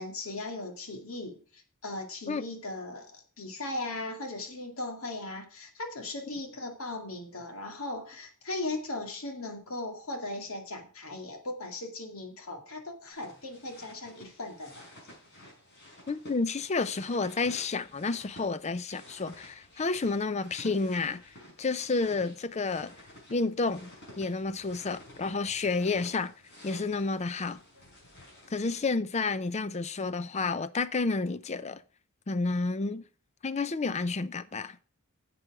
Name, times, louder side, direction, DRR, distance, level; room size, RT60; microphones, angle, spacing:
voice 1, 0.0-14.9, left 2 dB, 75° left, 2.2 m, -38 dB
sound 1, 13.1-28.8, left 1 dB, 50° left, 5.3 m, -52 dB
voice 2, 16.1-21.2 21.6-22.9 23.3-23.9 24.2-26.3 26.6-27.6 28.5-31.8 32.3-33.1 33.4-34.8, left 3 dB, 30° left, 0.5 m, -30 dB
11.0 x 7.7 x 4.8 m
head